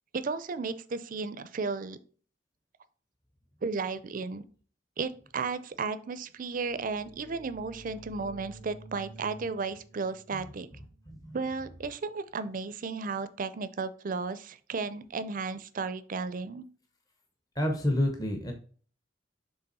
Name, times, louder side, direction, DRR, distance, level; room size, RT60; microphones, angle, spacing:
voice 1, 0.1-2.0 3.6-4.4 5.0-10.7 11.3-16.7, right 4 dB, 45° right, 13 dB, 0.5 m, -34 dB
sound 1, 6.5-12.0, right 2 dB, 85° left, 2.2 m, -51 dB
voice 2, 11.1-11.4 17.6-18.5, left 1 dB, 20° left, 4 dB, 0.8 m, -29 dB
6.7 x 3.5 x 4.2 m, 0.43 s
head